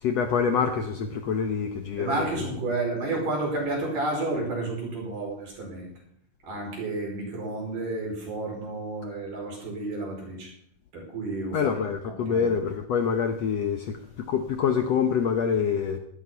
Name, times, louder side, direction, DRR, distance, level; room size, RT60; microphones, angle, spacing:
voice 1, 0.0-2.2 11.5-16.0, left 6 dB, 70° left, 6 dB, 1.7 m, -26 dB
voice 2, 2.0-5.9 6.5-10.5 10.9-11.7 12.0-12.6, right 2 dB, 65° right, -1 dB, 6.5 m, -31 dB
14.0 x 12.0 x 5.7 m, 0.72 s
omnidirectional pair, 4.0 m